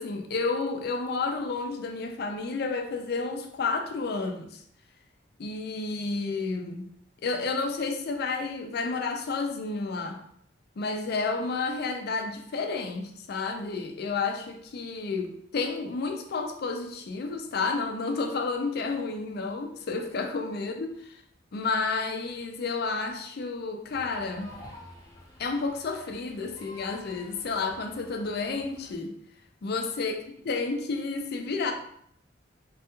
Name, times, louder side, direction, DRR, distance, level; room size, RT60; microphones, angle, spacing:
voice 1, 0.0-4.6 5.4-6.9 7.2-10.2 10.8-20.9 21.5-24.5 25.4-29.1 29.6-30.1 30.5-31.7, left 4 dB, 55° left, 0.4 m, -31 dB
sound 1, 23.9-28.9, left 1 dB, 15° left, 0.7 m, -49 dB
3.2 x 2.3 x 2.9 m
head